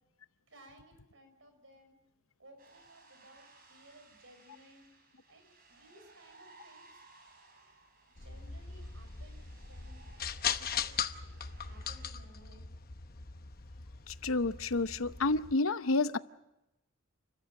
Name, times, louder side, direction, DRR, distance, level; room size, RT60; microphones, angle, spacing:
voice 1, 0.5-2.0 2.4-4.9 5.3-7.0 8.1-10.3 10.8-12.6, right 1 dB, 70° right, 7 dB, 5.7 m, -59 dB
sound 1, 2.6-12.1, right 3 dB, 45° right, 6.0 m, -61 dB
sound 2, 8.2-15.5, left 7 dB, 45° left, 1.0 m, -39 dB
voice 2, 14.1-16.2, left 3 dB, 85° left, 13 dB, 0.8 m, -30 dB
30.0 x 14.5 x 7.7 m, 0.90 s
head